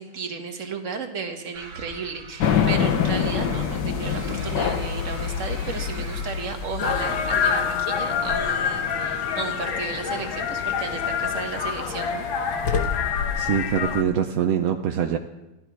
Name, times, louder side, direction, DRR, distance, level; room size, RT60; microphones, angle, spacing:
voice 1, 0.0-12.3, right 5 dB, 45° right, 4 dB, 1.6 m, -34 dB
sound 1, 1.5-6.8, right 4 dB, 85° right, 2.3 m, -40 dB
sound 2, 2.4-7.8, left 8 dB, 65° left, 1.6 m, -26 dB
sound 3, 6.8-14.0, left 7 dB, 80° left, 1.9 m, -26 dB
voice 2, 13.4-15.2, right 8 dB, 60° right, 4 dB, 0.9 m, -23 dB
14.5 x 12.5 x 4.6 m, 1.0 s
omnidirectional pair, 2.1 m